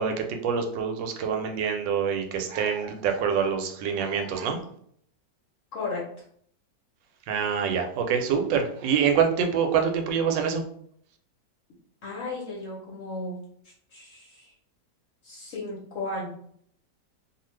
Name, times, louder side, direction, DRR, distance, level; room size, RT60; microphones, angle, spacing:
voice 1, 0.0-4.6 7.3-10.6, right 7 dB, 90° right, 5 dB, 1.3 m, -26 dB
voice 2, 5.7-6.0 12.0-13.4 13.9-14.5 15.2-16.3, left 2 dB, 65° left, -3 dB, 0.8 m, -34 dB
2.7 x 2.4 x 3.1 m, 0.64 s
omnidirectional pair, 1.9 m